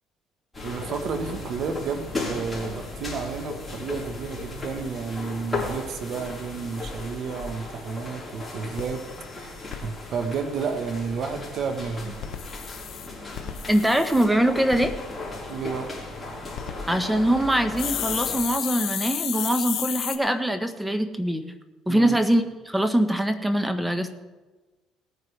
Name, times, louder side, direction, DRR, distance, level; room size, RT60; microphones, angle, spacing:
sound 1, 0.5-18.4, left 2 dB, 10° left, 4.2 m, -36 dB
voice 1, 0.6-9.0 9.4-12.1 15.5-15.9 21.9-22.2, right 5 dB, 60° right, 6 dB, 1.2 m, -31 dB
sound 2, 8.1-8.2 8.4-8.5 8.8-9.8 12.1-14.3 14.7-14.9 16.3-16.7 17.8-20.2, left 10 dB, 65° left, 0.9 m, -32 dB
voice 2, 13.7-14.9 16.9-21.5 21.9-24.1, right 1 dB, 5° right, 8 dB, 1.0 m, -23 dB
19.0 x 9.3 x 3.3 m, 1.2 s
cardioid pair, 95°, 0 cm